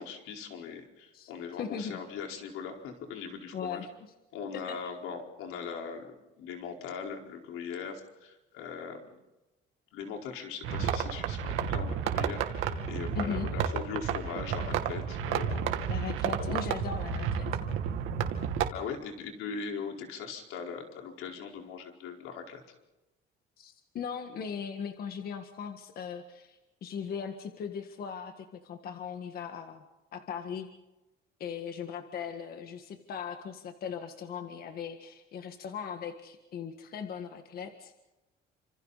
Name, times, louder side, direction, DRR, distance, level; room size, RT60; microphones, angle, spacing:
voice 1, 0.0-3.9 4.3-9.2 9.9-15.8 16.4-16.5 18.7-22.6, left 6 dB, 90° left, 2 dB, 4.5 m, -40 dB
voice 2, 1.6-2.0 3.5-3.9 4.7-4.8 13.2-13.5 15.9-17.7 23.6-29.8 30.1-30.7 31.4-37.9, left 7 dB, 45° left, 6 dB, 1.7 m, -38 dB
sound 1, 10.6-18.7, right 7 dB, 80° right, 2.4 m, -31 dB
29.5 x 26.5 x 4.2 m, 1.0 s
cardioid pair, 165°, 21 cm